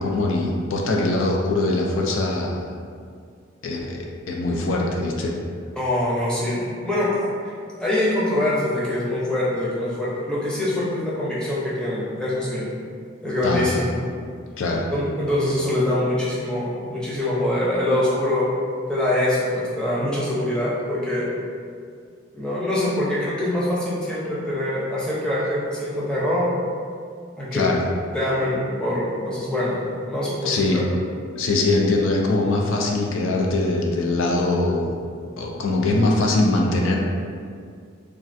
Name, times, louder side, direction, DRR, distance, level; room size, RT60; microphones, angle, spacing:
voice 1, 0.0-2.7 3.6-5.3 13.4-13.6 14.6-14.8 27.5-27.8 30.4-30.8 31.3-34.9 35.4-37.0, left 2 dB, 70° left, 0 dB, 0.3 m, -22 dB
voice 2, 5.8-7.5 7.8-12.7 13.2-14.0 14.9-18.4 18.9-21.3 22.3-26.5 27.4-27.7 28.1-30.8, left 1 dB, 5° left, -8 dB, 0.6 m, -24 dB
3.2 x 2.3 x 2.5 m, 2.2 s
head